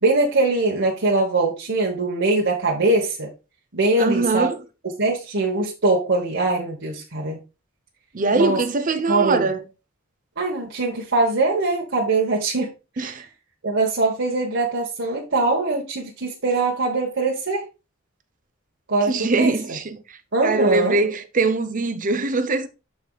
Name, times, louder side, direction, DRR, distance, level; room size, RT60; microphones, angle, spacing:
voice 1, 0.0-3.3 3.7-4.5 5.0-7.4 8.3-8.6 9.1-9.5 10.4-12.7 13.0-13.2 13.6-17.6 18.9-19.8 20.3-21.0, right 2 dB, 60° right, 1.3 m, -22 dB
voice 2, 4.0-4.6 8.1-9.6 13.0-13.2 19.1-20.0 20.4-22.7, right 3 dB, 40° right, 0.8 m, -22 dB
12.0 x 4.7 x 2.4 m
head